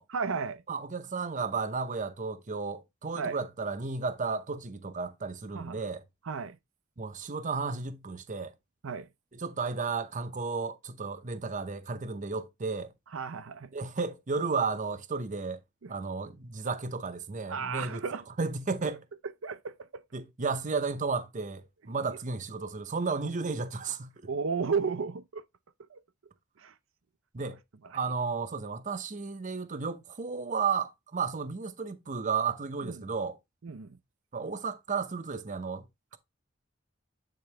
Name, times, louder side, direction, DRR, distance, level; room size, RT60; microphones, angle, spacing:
voice 1, 0.1-0.6 3.2-3.4 5.5-5.8 6.3-6.6 8.8-9.1 13.1-13.7 15.8-15.9 17.5-18.2 19.4-19.8 24.3-25.4 25.9-26.0 26.6-26.7 32.8-33.1 33.6-34.0, right 5 dB, 75° right, 0.6 m, -33 dB
voice 2, 0.7-6.0 7.0-8.5 9.3-12.9 13.7-15.6 15.9-18.0 18.4-19.1 20.1-24.1 27.3-27.6 27.9-33.4 34.3-35.9, right 4 dB, 40° right, 0.7 m, -33 dB
8.7 x 3.8 x 3.3 m
head